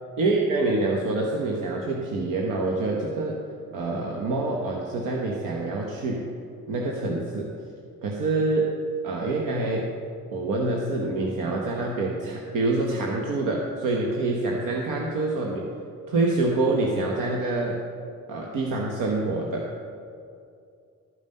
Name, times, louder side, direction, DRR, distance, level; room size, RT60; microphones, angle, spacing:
voice 1, 0.2-3.4 3.7-6.3 6.7-7.5 8.0-8.8 9.0-9.9 10.3-15.7 16.1-17.8 18.3-19.7, right 2 dB, 85° right, -1 dB, 1.1 m, -26 dB
13.0 x 5.5 x 5.3 m, 2.4 s
cardioid pair, 125°, 31 cm